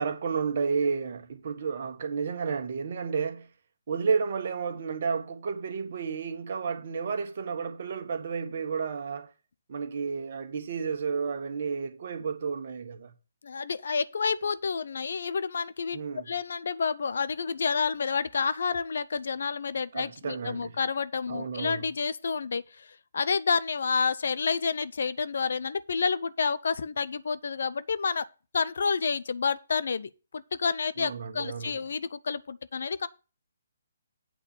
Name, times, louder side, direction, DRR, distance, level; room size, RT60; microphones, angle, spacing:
voice 1, 0.0-3.5 3.9-9.3 9.7-13.1 15.9-16.3 19.9-20.8 21.3-21.9 31.0-31.8, right 5 dB, 50° right, 1.4 m, -31 dB
voice 2, 13.4-16.0 16.3-22.9 23.1-28.3 28.5-33.1, left 5 dB, 65° left, 0.7 m, -29 dB
8.7 x 4.1 x 7.1 m
figure-of-eight pair, 140°, 0 cm